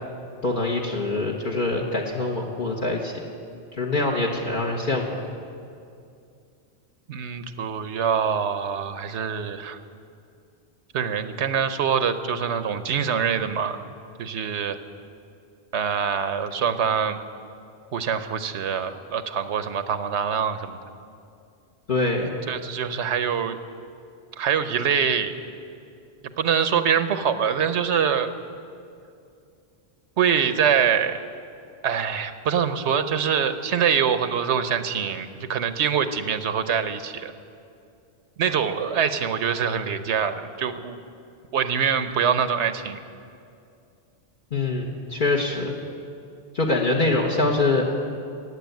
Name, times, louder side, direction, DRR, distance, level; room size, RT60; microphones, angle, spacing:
voice 1, 0.4-3.1 3.7-5.3 21.9-22.3 44.5-45.8 46.5-47.9, left 2 dB, 50° left, -2 dB, 1.3 m, -24 dB
voice 2, 7.1-9.8 10.9-13.9 14.2-14.8 15.7-17.2 17.9-20.8 22.5-23.6 24.4-25.4 26.4-28.3 30.2-31.2 31.8-37.3 38.4-41.0 41.5-43.0, right 7 dB, 85° right, 10 dB, 1.1 m, -24 dB
16.5 x 8.0 x 9.2 m, 2.5 s
omnidirectional pair, 1.1 m